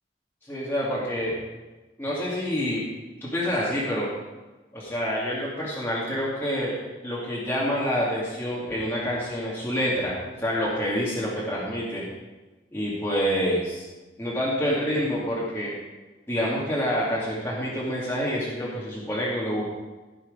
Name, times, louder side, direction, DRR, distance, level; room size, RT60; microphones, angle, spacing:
voice 1, 0.5-1.4 2.0-2.8 3.2-4.1 4.7-6.8 7.0-12.0 12.7-13.9 14.2-15.7 16.3-19.7, equal, 15° left, -7 dB, 2.3 m, -27 dB
15.5 x 6.3 x 5.1 m, 1.2 s
head